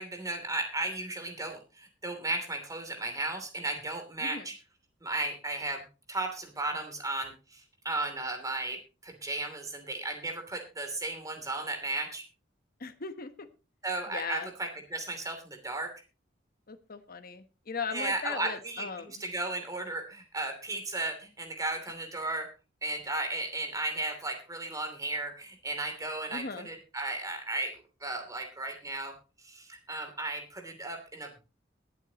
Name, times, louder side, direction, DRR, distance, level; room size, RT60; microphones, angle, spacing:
voice 1, 0.0-4.6 5.0-5.8 6.1-12.2 13.8-15.9 17.9-22.5 22.8-29.1 29.4-31.4, right 2 dB, 20° right, 4 dB, 2.9 m, -35 dB
voice 2, 12.8-13.5 14.1-14.5 16.7-19.2 26.3-26.7, left 5 dB, 50° left, 10 dB, 1.1 m, -38 dB
21.5 x 8.1 x 2.9 m, 0.32 s
head